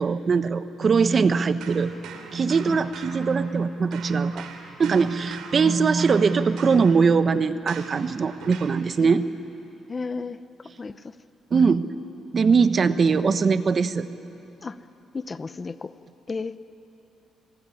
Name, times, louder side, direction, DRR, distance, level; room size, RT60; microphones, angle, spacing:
voice 1, 0.0-1.9 2.3-4.5 4.8-9.2 11.5-11.9 12.3-14.1, right 5 dB, 45° right, 11 dB, 1.1 m, -21 dB
sound 1, 1.6-3.7 3.9-8.8, right 5 dB, 85° right, 3.0 m, -43 dB
voice 2, 9.9-10.4 10.8-11.1 14.6-14.8 15.1-16.0 16.3-16.6, left 4 dB, 30° left, 13 dB, 0.8 m, -33 dB
28.0 x 21.0 x 9.9 m, 2.9 s
cardioid pair, 90°, 0 cm